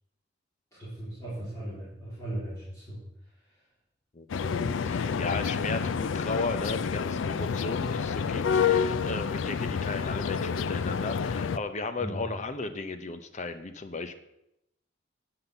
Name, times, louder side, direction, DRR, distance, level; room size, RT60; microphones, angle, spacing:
voice 1, 0.7-3.0 7.8-7.9 12.0-12.3, right 1 dB, 15° left, -11 dB, 3.9 m, -38 dB
sound 1, 4.3-11.6, left 6 dB, 80° left, 0.4 m, -29 dB
voice 2, 4.8-14.2, left 3 dB, 40° left, 9 dB, 0.7 m, -35 dB
10.0 x 5.7 x 6.8 m, 0.85 s
head